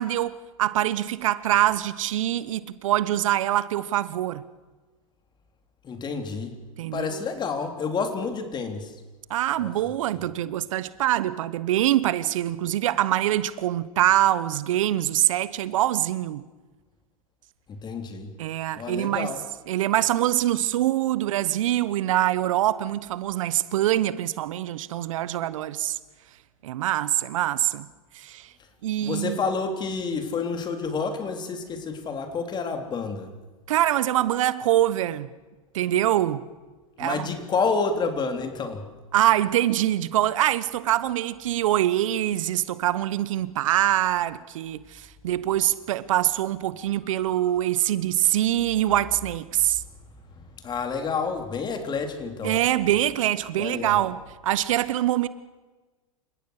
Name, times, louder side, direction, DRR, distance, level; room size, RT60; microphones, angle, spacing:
voice 1, 0.0-4.4 6.8-7.2 9.3-16.4 18.4-19.3 19.7-26.0 26.6-27.9 28.1-28.5 28.8-29.4 33.7-35.3 35.7-36.5 37.0-37.3 39.1-49.8 52.4-55.3, right 13 dB, 65° right, 1.0 m, -24 dB
voice 2, 5.8-6.5 6.9-8.9 9.6-10.3 17.7-18.3 18.8-19.4 29.0-33.3 37.0-38.8 47.3-47.4 50.6-52.6 53.6-54.1, left 4 dB, 25° left, 3.6 m, -29 dB
29.0 x 17.0 x 6.6 m
hypercardioid pair, 110°, 18 cm